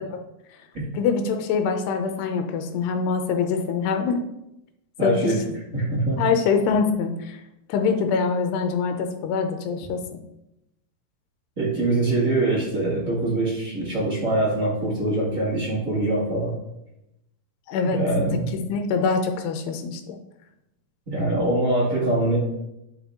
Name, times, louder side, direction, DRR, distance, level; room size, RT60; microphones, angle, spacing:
voice 1, 0.9-4.2 5.0-5.3 6.2-7.4 7.7-10.2 17.7-18.0 18.5-20.2, left 5 dB, 90° left, 6 dB, 2.9 m, -24 dB
voice 2, 5.0-5.4 5.7-6.2 11.6-16.5 17.8-18.5 21.1-22.4, right 1 dB, 30° right, -6 dB, 1.7 m, -23 dB
10.5 x 5.3 x 3.7 m, 0.87 s
omnidirectional pair, 4.6 m